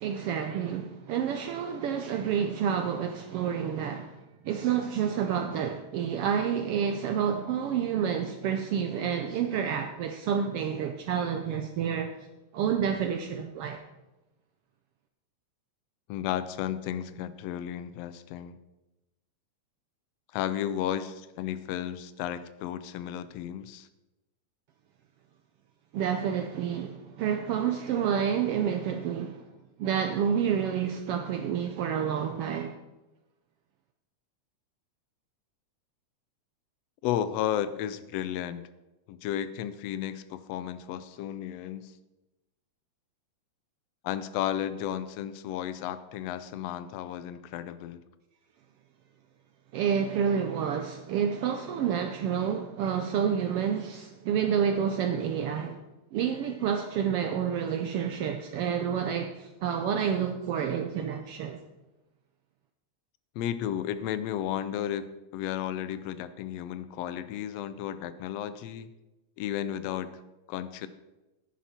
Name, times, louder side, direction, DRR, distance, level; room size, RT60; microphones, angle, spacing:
voice 1, 0.0-4.1 4.4-12.1 12.5-13.8 25.9-29.4 29.8-32.8 49.7-55.8 56.1-61.6, right 8 dB, 85° right, 1.3 m, -29 dB
voice 2, 16.1-18.6 20.3-23.9 37.0-38.6 39.1-41.9 44.0-48.0 63.3-68.9 69.4-70.1 70.5-70.9, left 10 dB, 80° left, 1.5 m, -33 dB
10.5 x 10.5 x 4.3 m
omnidirectional pair, 3.4 m